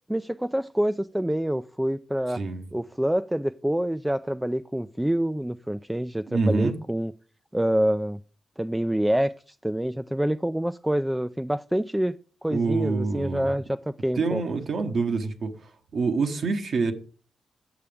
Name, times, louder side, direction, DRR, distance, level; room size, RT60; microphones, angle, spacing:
voice 1, 0.1-2.4 2.7-7.1 7.5-8.2 8.6-12.2 12.4-14.4, right 1 dB, 10° right, 0.3 m, -26 dB
voice 2, 2.3-2.7 6.3-6.7 12.5-13.6 14.2-16.9, right 4 dB, 65° right, 1.0 m, -26 dB
7.0 x 6.6 x 3.4 m
supercardioid pair, 50°, 0 cm